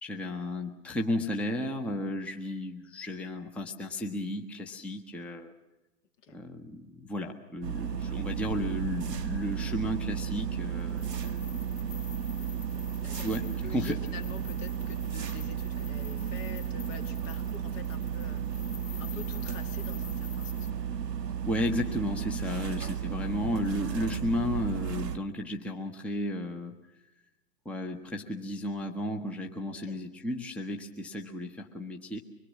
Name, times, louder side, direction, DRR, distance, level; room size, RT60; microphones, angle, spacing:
voice 1, 0.0-5.5 6.3-11.5 13.2-14.0 21.5-26.7 27.6-32.2, left 1 dB, 5° left, 2 dB, 0.9 m, -33 dB
sound 1, 7.6-25.2, right 8 dB, 85° right, 0.9 m, -34 dB
sound 2, 10.9-20.7, left 9 dB, 20° left, 2.2 m, -50 dB
voice 2, 13.0-18.7 19.0-21.0 29.7-30.0, left 6 dB, 50° left, 6 dB, 2.3 m, -47 dB
24.5 x 22.0 x 7.4 m, 1.0 s
figure-of-eight pair, 115°, 48 cm